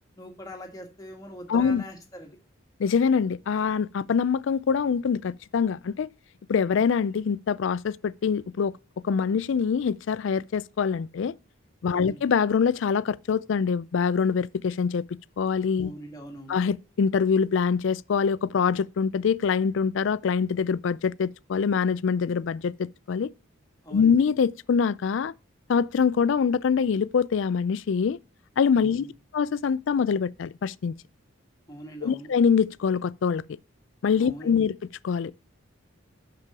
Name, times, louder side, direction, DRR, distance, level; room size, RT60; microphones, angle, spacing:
voice 1, 0.2-2.4 11.9-12.2 15.8-16.6 23.8-24.2 28.8-29.1 31.7-32.3 34.2-34.6, equal, 15° left, 1.7 m, -42 dB
voice 2, 1.5-1.8 2.8-6.1 6.5-8.7 9.0-11.3 11.8-15.0 15.4-15.9 16.5-23.3 23.9-25.3 25.7-28.2 28.6-29.0 29.3-30.9 32.0-33.4 34.0-34.8 35.0-35.3, left 6 dB, 65° left, 0.4 m, -24 dB
6.1 x 5.9 x 6.7 m
head